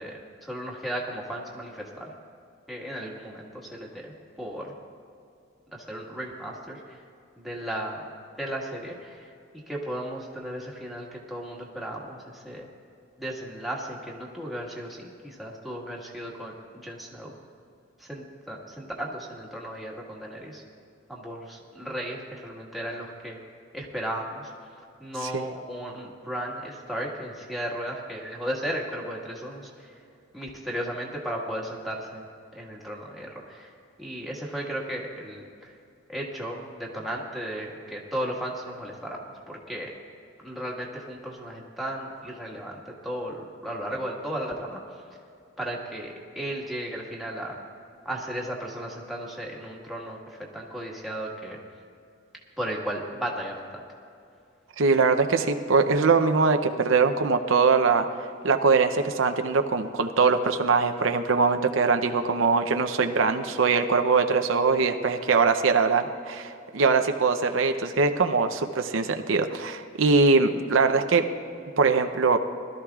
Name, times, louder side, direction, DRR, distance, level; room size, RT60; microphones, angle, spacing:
voice 1, 0.0-2.1 2.7-4.7 5.7-7.0 7.3-8.0 8.4-9.3 9.7-12.7 13.2-17.3 18.0-20.6 21.1-23.4 23.7-24.5 25.0-30.0 30.3-32.2 32.5-33.7 34.0-35.8 36.1-39.9 40.4-44.8 45.6-47.6 48.0-51.6 52.6-54.0, right 1 dB, ahead, -4 dB, 1.6 m, -35 dB
voice 2, 54.8-58.1 58.4-71.2 71.8-72.4, right 4 dB, 85° right, 7 dB, 0.7 m, -22 dB
21.5 x 13.0 x 2.4 m, 2.5 s
head